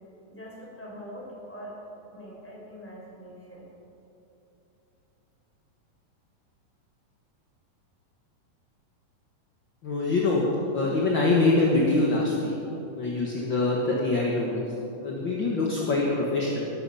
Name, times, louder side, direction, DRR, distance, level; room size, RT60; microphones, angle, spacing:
voice 1, 0.3-1.8 2.1-3.7, equal, 5° left, -5 dB, 4.5 m, -43 dB
voice 2, 9.8-10.4 10.7-12.5 12.9-14.6 15.0-16.7, left 2 dB, 45° left, -3 dB, 1.6 m, -24 dB
20.0 x 12.0 x 5.7 m, 3.0 s
omnidirectional pair, 4.2 m